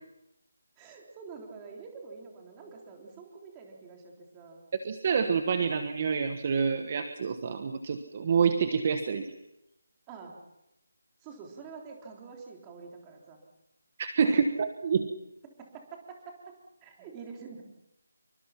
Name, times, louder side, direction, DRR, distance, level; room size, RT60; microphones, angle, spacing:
voice 1, 0.8-4.6 10.1-10.3 11.2-13.4 14.2-14.4 15.4-17.6, right 5 dB, 10° right, 0 dB, 3.6 m, -47 dB
voice 2, 4.8-9.3 14.0-15.1, right 6 dB, 30° right, 8 dB, 1.3 m, -27 dB
27.0 x 24.5 x 5.9 m, 0.89 s
figure-of-eight pair, 175°, 0 cm